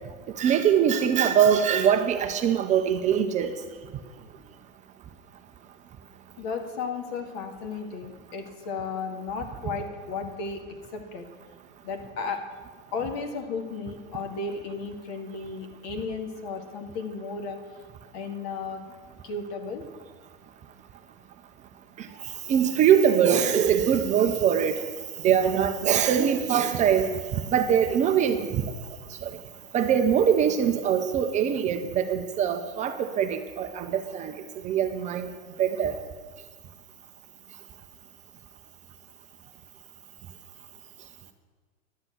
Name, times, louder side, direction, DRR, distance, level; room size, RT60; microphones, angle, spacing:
voice 1, 0.4-3.5 22.0-22.1 22.5-24.8 25.2-27.1 27.5-28.6 29.2-29.3 29.7-34.4 34.6-35.3 35.6-35.9, right 8 dB, 20° right, 7 dB, 0.5 m, -22 dB
voice 2, 6.4-10.6 10.9-11.3 11.8-12.4 12.9-17.6 18.1-18.8 19.2-19.8, left 4 dB, 45° left, 5 dB, 2.0 m, -34 dB
11.0 x 7.5 x 8.0 m, 1.4 s
hypercardioid pair, 110°, 41 cm